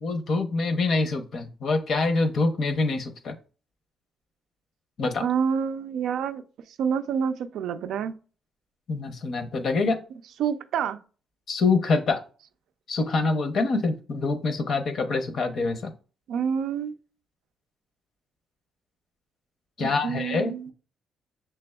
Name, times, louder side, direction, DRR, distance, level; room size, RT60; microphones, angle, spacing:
voice 1, 0.0-3.3 5.0-5.3 8.9-10.0 11.5-12.2 12.9-15.9 19.8-20.7, left 3 dB, 60° left, 0.7 m, -25 dB
voice 2, 5.2-6.4 6.8-8.2 10.4-11.0 16.3-16.9 19.8-20.7, right 7 dB, 80° right, 0.3 m, -27 dB
5.9 x 3.3 x 2.3 m
cardioid pair, 90°, 0 cm